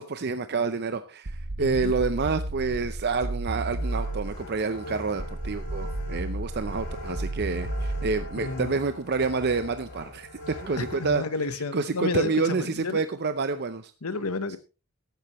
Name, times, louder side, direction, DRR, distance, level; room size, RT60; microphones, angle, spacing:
voice 1, 0.0-10.3 10.6-11.2 11.7-13.9, right 4 dB, 50° right, 0.6 m, -28 dB
sound 1, 1.3-4.5 5.2-8.5, right 2 dB, 75° right, 1.1 m, -32 dB
voice 2, 1.6-1.9 8.4-8.8 10.8-13.0 14.0-14.6, left 3 dB, 80° left, 1.1 m, -31 dB
sound 2, 3.8-11.2, left 1 dB, 55° left, 4.4 m, -41 dB
14.5 x 11.5 x 3.1 m
head